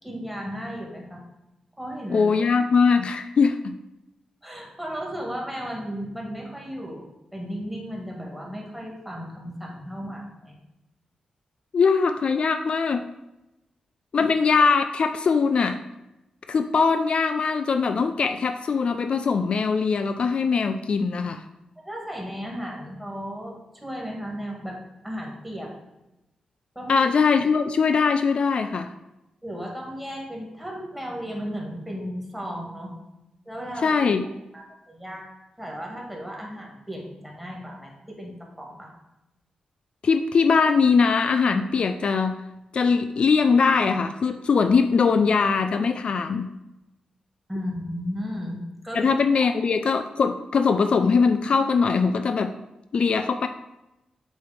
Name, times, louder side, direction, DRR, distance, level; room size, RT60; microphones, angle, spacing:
voice 1, 0.0-1.2 1.8-2.3 4.4-10.5 14.2-14.3 21.8-25.7 26.8-27.0 29.4-32.9 33.5-33.9 34.5-35.3 35.6-39.0 47.5-48.6 48.8-49.1, equal, 5° right, -1 dB, 1.9 m, -35 dB
voice 2, 2.1-3.7 11.7-13.1 14.1-15.8 16.5-21.4 26.9-28.9 33.8-34.3 40.0-42.4 42.7-46.5 48.9-52.5 52.9-53.5, left 5 dB, 55° left, 8 dB, 0.3 m, -21 dB
7.9 x 3.2 x 5.1 m, 0.95 s
cardioid pair, 85°, 2 cm